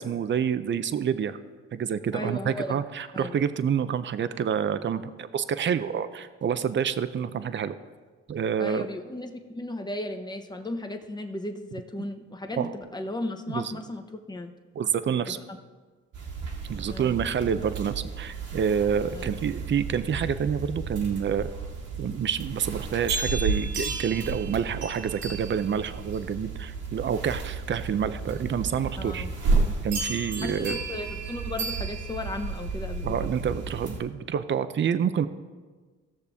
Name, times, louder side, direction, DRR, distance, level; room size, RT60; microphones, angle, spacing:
voice 1, 0.0-1.4 1.7-7.8 8.3-8.9 12.0-12.1 12.6-12.8 13.5-13.7 14.7-15.4 16.7-21.5 22.0-29.3 29.8-30.8 33.0-35.3, right 7 dB, 40° right, 12 dB, 0.6 m, -28 dB
voice 2, 2.1-2.8 3.1-3.3 8.6-14.5 15.3-15.4 16.9-17.2 19.1-19.2 29.0-29.3 30.4-33.3, left 1 dB, 15° left, 6 dB, 1.0 m, -35 dB
sound 1, 16.1-34.0, right 3 dB, 75° right, 2.1 m, -32 dB
17.0 x 6.7 x 3.5 m, 1.4 s
cardioid pair, 90°, 30 cm